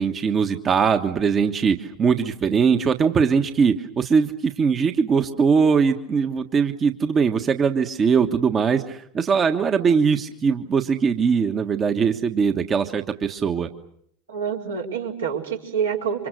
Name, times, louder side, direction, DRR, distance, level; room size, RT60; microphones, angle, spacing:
voice 1, 0.0-13.7, right 6 dB, 30° right, 6 dB, 1.4 m, -21 dB
voice 2, 14.3-16.3, right 7 dB, 80° right, -1 dB, 4.3 m, -27 dB
28.5 x 25.5 x 6.5 m, 0.70 s
figure-of-eight pair, 80°, 0 cm